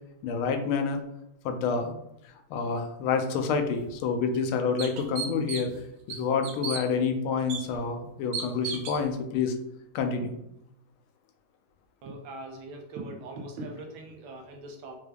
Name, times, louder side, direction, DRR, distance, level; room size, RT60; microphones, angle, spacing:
voice 1, 0.2-1.0 1.4-2.0 2.5-5.7 6.1-9.5 9.9-10.3, left 5 dB, 85° left, 6 dB, 1.4 m, -28 dB
sound 1, 3.7-3.8 4.4-4.5 4.8-5.8 6.1-6.8 7.5-7.6 8.3-9.0, right 5 dB, 65° right, 1.0 m, -34 dB
voice 2, 12.0-15.0, right 2 dB, 80° right, 2 dB, 1.5 m, -41 dB
4.6 x 2.3 x 3.3 m, 0.82 s
omnidirectional pair, 2.2 m